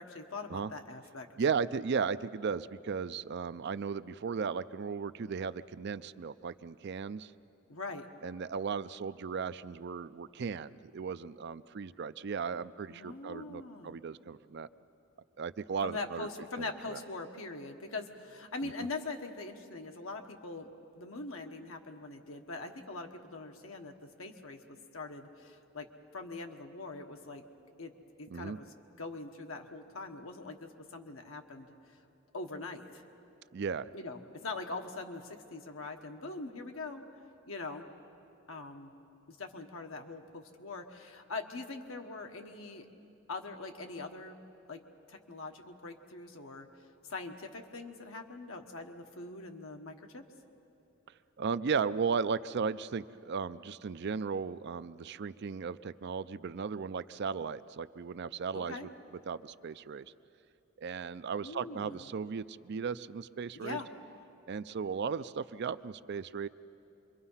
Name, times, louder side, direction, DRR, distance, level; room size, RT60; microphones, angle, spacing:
voice 1, 0.0-1.3 7.7-8.1 12.9-13.9 15.8-20.7 20.9-25.9 26.1-27.4 27.8-27.9 28.2-28.7 29.0-31.7 32.3-33.0 33.9-37.0 37.5-37.8 38.5-38.9 39.3-42.9 43.3-44.4 44.7-44.8 45.1-46.7 47.1-50.3 58.5-58.9 61.4-62.1 63.5-63.9, left 3 dB, 80° left, 4 dB, 1.4 m, -42 dB
voice 2, 1.4-7.3 8.2-14.7 15.4-16.3 16.6-17.0 18.6-18.7 28.3-28.6 33.5-33.9 51.4-58.9 59.3-60.1 60.8-63.8 64.5-66.5, right 5 dB, 55° right, 14 dB, 0.4 m, -36 dB
27.0 x 23.0 x 5.7 m, 2.8 s
head